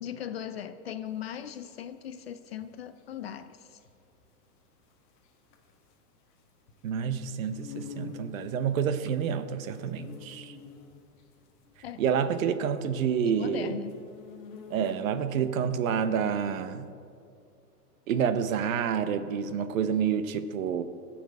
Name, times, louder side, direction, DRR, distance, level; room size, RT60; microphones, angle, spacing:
voice 1, 0.0-3.8 11.8-12.0 13.2-14.0, left 9 dB, 45° left, 11 dB, 0.4 m, -38 dB
sound 1, 1.1-15.3, left 6 dB, 25° left, 1.3 m, -49 dB
voice 2, 6.8-10.5 12.0-13.8 14.7-16.9 18.1-20.8, right 7 dB, 55° right, 11 dB, 0.9 m, -28 dB
14.5 x 6.0 x 8.5 m, 2.4 s
hypercardioid pair, 155°, 48 cm